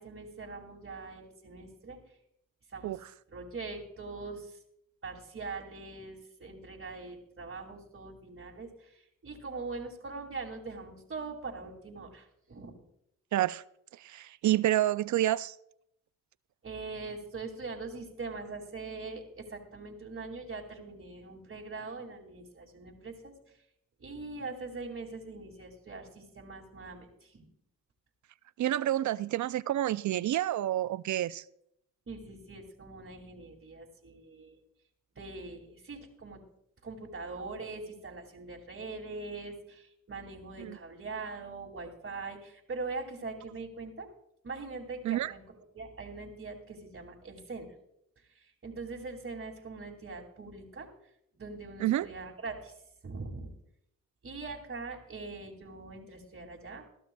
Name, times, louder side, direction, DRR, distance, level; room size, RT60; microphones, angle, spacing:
voice 1, 0.0-2.0 2.7-3.0 3.3-4.6 5.0-12.8 16.6-23.6 24.0-27.5 32.1-34.6 35.2-36.4 36.8-44.1 44.4-47.7 48.3-50.9 51.3-52.8 53.0-53.5 54.2-56.9, right 3 dB, 35° right, 2.4 m, -42 dB
voice 2, 13.3-13.6 14.0-15.5 28.6-31.4 40.6-40.8 45.0-45.3 51.8-52.1, right 13 dB, 55° right, 0.5 m, -29 dB
21.0 x 12.0 x 2.3 m
supercardioid pair, 60°, 35 cm